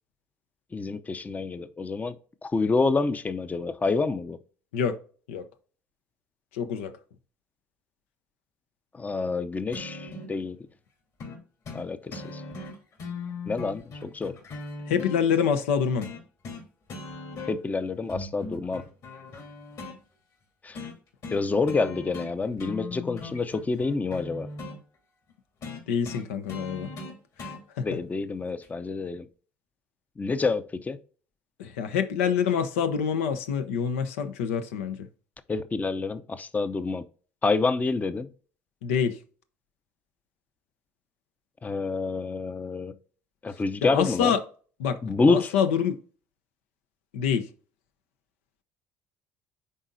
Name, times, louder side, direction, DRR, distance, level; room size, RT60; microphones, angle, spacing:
voice 1, 0.7-2.1 2.4-4.4 8.9-10.6 11.7-12.4 13.5-14.3 17.5-18.8 20.6-20.8 21.3-24.5 27.8-29.3 30.2-31.0 35.5-37.0 37.4-38.3 41.6-42.9 43.4-44.3 45.0-45.5, left 3 dB, 20° left, 0.6 m, -27 dB
voice 2, 6.5-6.9 14.9-16.1 25.7-26.9 27.4-28.0 31.6-35.1 38.8-39.2 43.8-44.4 44.8-45.0 45.3-46.0 47.1-47.5, left 7 dB, 90° left, 0.7 m, -26 dB
sound 1, 9.7-10.3 11.2-11.4 11.6-11.8 12.1-15.2 16.0-16.6 16.9-17.7 18.1-20.0 20.7-20.9 21.2-21.4 21.7-22.3 22.6-24.8 25.6-27.6 28.6-28.7, left 3 dB, 55° left, 3.1 m, -39 dB
10.0 x 4.1 x 2.6 m
supercardioid pair, 75°, 7 cm